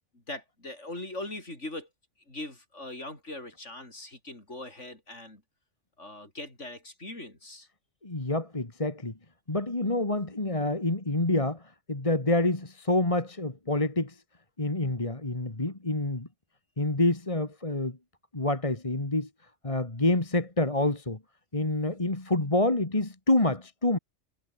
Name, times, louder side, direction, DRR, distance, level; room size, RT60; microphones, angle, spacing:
voice 1, 0.1-1.9 2.3-5.4 6.0-7.7, left 2 dB, 80° left, 6.7 m, -41 dB
voice 2, 8.0-9.1 9.5-14.2 14.6-16.3 16.8-18.0 18.3-19.3 19.6-21.2 21.5-24.0, left 2 dB, 25° left, 2.4 m, -27 dB
omnidirectional pair, 1.2 m